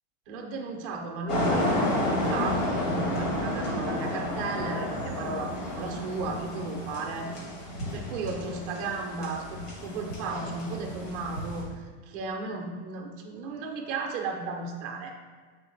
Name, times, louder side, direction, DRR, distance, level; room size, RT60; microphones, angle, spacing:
voice 1, 0.3-7.3 7.9-15.1, right 3 dB, 30° right, 2 dB, 0.4 m, -34 dB
sound 1, 1.3-11.6, left 1 dB, 85° left, 1.4 m, -31 dB
3.8 x 3.1 x 4.2 m, 1.4 s
supercardioid pair, 170°, 36 cm